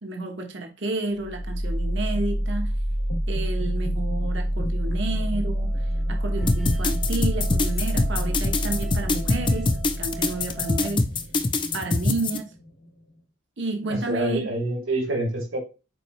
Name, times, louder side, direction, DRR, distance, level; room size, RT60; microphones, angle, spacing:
voice 1, 0.0-2.7 3.3-5.8 6.1-11.1 11.7-12.5 13.6-14.5, right 2 dB, 60° right, 1.2 m, -31 dB
sound 1, 1.2-13.1, equal, 80° left, 2.3 m, -27 dB
Musical instrument, 5.2-10.9, right 6 dB, ahead, 0.8 m, -43 dB
sound 2, 6.5-12.4, left 3 dB, 25° left, 0.5 m, -23 dB
voice 2, 13.9-15.6, right 1 dB, 75° right, 2.7 m, -26 dB
6.8 x 4.6 x 3.1 m
head